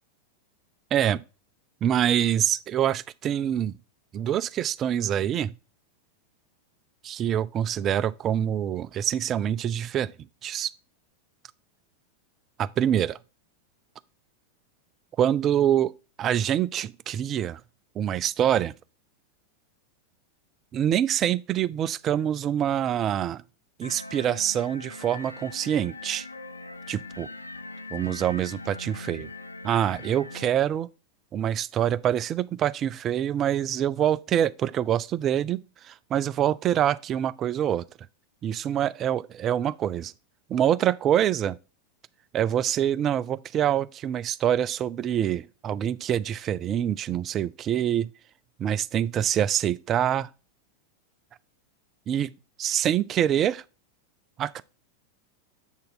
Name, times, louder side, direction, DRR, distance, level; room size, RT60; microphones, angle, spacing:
voice 1, 0.9-1.2 1.8-3.7 4.1-5.5 7.0-10.1 10.4-10.7 12.6-13.2 15.2-15.9 16.2-17.6 18.0-18.7 20.7-23.4 23.8-26.3 26.9-27.3 27.9-29.3 29.6-30.9 31.3-37.8 38.4-40.1 40.5-41.6 42.3-48.1 48.6-50.3 52.1-52.3 52.6-53.6 54.4-54.6, right 10 dB, 30° right, 0.4 m, -25 dB
sound 1, 23.8-30.5, left 2 dB, 80° left, 0.5 m, -41 dB
7.8 x 4.0 x 4.0 m
figure-of-eight pair, 90°, 0 cm